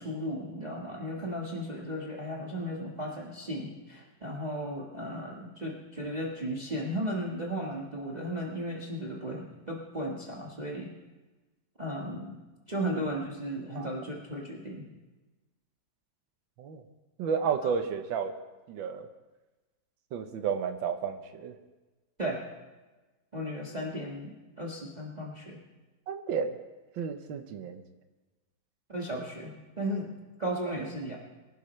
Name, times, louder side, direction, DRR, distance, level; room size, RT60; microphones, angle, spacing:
voice 1, 0.0-10.9 11.8-12.4 12.7-14.9 17.6-17.7 22.2-22.5 23.3-25.6 28.9-31.2, equal, 25° right, -2 dB, 1.5 m, -35 dB
voice 2, 17.2-18.3 18.7-19.1 20.1-21.6 26.1-26.6 27.0-27.8, right 6 dB, 80° right, 7 dB, 1.7 m, -32 dB
24.0 x 11.0 x 3.2 m, 1.2 s
omnidirectional pair, 2.1 m